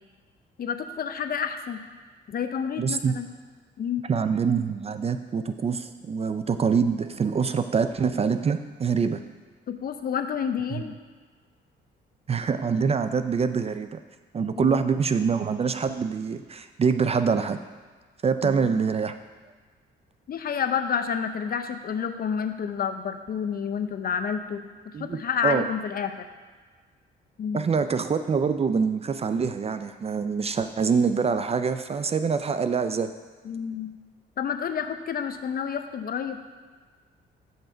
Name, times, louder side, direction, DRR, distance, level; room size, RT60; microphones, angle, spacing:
voice 1, 0.6-1.8 2.3-3.3 3.8-4.0 9.7-10.9 14.5-14.8 18.4-18.8 20.3-26.2 27.4-27.7 33.4-33.9 34.4-36.4, left 7 dB, 50° left, 8 dB, 0.6 m, -29 dB
voice 2, 2.8-3.1 4.1-9.2 10.7-10.8 12.3-14.0 14.3-17.6 18.2-19.2 24.9-25.6 27.5-33.1, right 5 dB, 30° right, 10 dB, 0.4 m, -25 dB
7.4 x 5.6 x 4.4 m, 1.5 s
cardioid pair, 90°, 20 cm